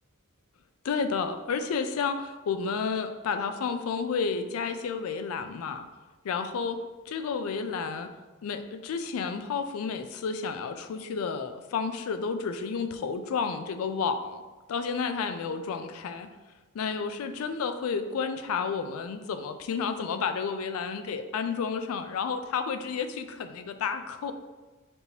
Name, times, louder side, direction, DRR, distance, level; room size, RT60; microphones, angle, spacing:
voice 1, 0.8-5.9 6.2-6.8 7.1-8.1 8.4-14.4 14.7-16.3 16.7-24.3, left 5 dB, 75° left, 9 dB, 0.4 m, -31 dB
5.3 x 2.9 x 2.8 m, 1.2 s
head